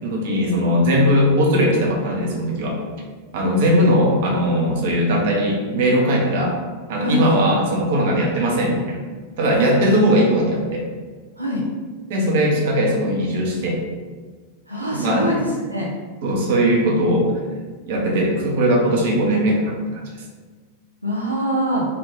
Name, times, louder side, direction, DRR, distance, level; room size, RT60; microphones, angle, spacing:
voice 1, 0.0-2.8 3.3-6.5 6.9-9.0 9.4-10.8 12.1-13.8 14.8-15.3 16.2-17.3 17.8-20.2, equal, 55° right, -1 dB, 0.8 m, -19 dB
voice 2, 14.7-15.9 21.0-21.9, equal, 90° right, -5 dB, 0.5 m, -23 dB
3.2 x 2.5 x 3.8 m, 1.4 s
figure-of-eight pair, 90°, 0 cm